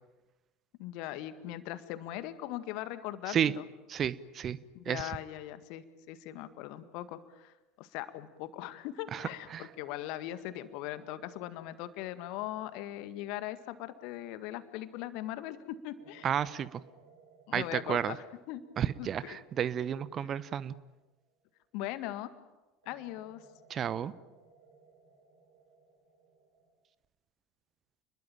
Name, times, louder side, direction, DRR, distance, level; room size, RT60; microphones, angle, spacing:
voice 1, 0.8-3.6 4.8-16.3 17.5-18.2 18.5-18.6 19.0-19.4 21.7-22.3 22.9-23.4, left 14 dB, 50° left, 12 dB, 1.9 m, -40 dB
voice 2, 3.9-4.6 4.9-5.2 9.1-9.7 16.2-16.8 17.5-18.2 18.8-20.7 23.7-24.1, right 9 dB, 35° right, 18 dB, 1.0 m, -32 dB
sound 1, 7.8-8.2 9.1-15.0 16.0-22.0 22.8-26.8, right 4 dB, 70° right, 6.6 m, -62 dB
29.5 x 21.5 x 9.0 m, 1.1 s
figure-of-eight pair, 70°, 0 cm